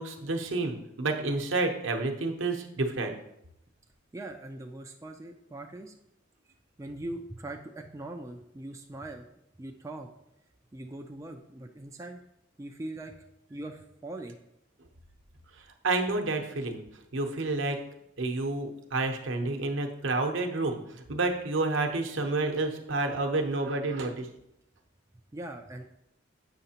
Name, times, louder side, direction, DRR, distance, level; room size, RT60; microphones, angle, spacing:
voice 1, 0.0-3.1 15.8-16.8 17.1-17.8 18.2-20.8 21.1-24.3, right 2 dB, 75° right, 3 dB, 0.8 m, -29 dB
voice 2, 4.1-5.9 6.8-9.3 9.6-10.1 10.7-12.2 12.6-13.2 13.5-14.4 25.3-25.8, right 1 dB, 15° right, 3 dB, 0.3 m, -41 dB
7.8 x 5.7 x 2.8 m, 0.81 s
head